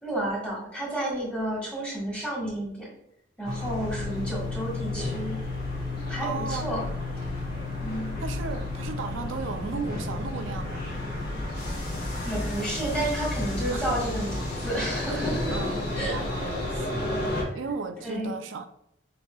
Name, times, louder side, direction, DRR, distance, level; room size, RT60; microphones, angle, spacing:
voice 1, 0.0-2.9 3.4-5.4 6.1-6.8 7.8-8.2 12.2-16.2 17.4-17.5 18.0-18.4, right 1 dB, 5° left, 1.5 m, -31 dB
sound 1, 3.4-17.4, left 2 dB, 50° left, 1.4 m, -31 dB
voice 2, 6.2-6.8 8.2-10.9 13.7-13.9 15.1-15.2 15.5-18.7, right 4 dB, 80° right, 0.4 m, -36 dB
6.3 x 2.8 x 2.3 m
head